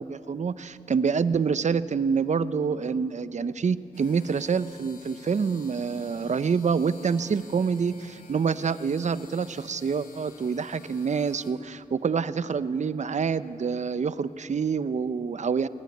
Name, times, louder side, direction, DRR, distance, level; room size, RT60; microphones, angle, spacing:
voice 1, 0.0-15.7, right 5 dB, 55° right, 15 dB, 0.7 m, -27 dB
sound 1, 3.9-11.5, left 3 dB, 90° left, 3.9 m, -52 dB
21.5 x 18.5 x 9.4 m, 2.7 s
cardioid pair, 70°, 15 cm